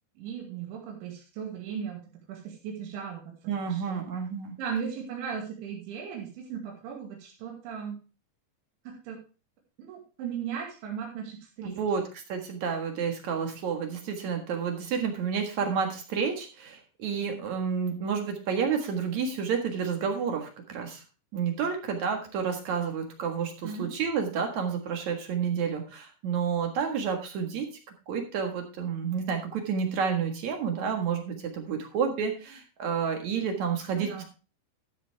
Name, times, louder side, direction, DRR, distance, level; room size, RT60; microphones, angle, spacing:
voice 1, 0.2-2.0 2.3-3.3 3.7-4.1 4.6-8.0 8.9-9.2 9.8-11.8 23.6-23.9 34.0-34.2, right 7 dB, 80° right, 0 dB, 4.7 m, -37 dB
voice 2, 3.5-4.5 11.6-21.0 21.3-27.7 28.1-34.2, right 6 dB, 55° right, 4 dB, 2.2 m, -30 dB
13.0 x 8.1 x 3.5 m, 0.33 s
omnidirectional pair, 5.3 m